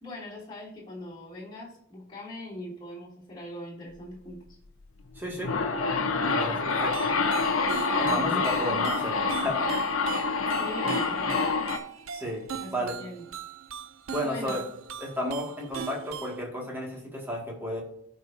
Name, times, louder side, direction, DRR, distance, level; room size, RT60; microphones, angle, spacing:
voice 1, 0.0-4.6 8.0-8.5 10.5-11.5 12.6-13.2 14.2-14.7, left 1 dB, 20° left, -7 dB, 3.0 m, -41 dB
sound 1, 5.2-11.8, left 4 dB, 80° left, 0.9 m, -27 dB
voice 2, 5.2-5.5 6.2-7.1 8.0-9.6 9.9-10.1 12.1-12.4 12.7-13.0 14.1-14.6 15.0-17.8, equal, 10° right, -2 dB, 2.2 m, -33 dB
sound 2, 6.8-16.4, right 7 dB, 75° right, 0.6 m, -40 dB
14.5 x 5.4 x 2.8 m, 0.73 s
head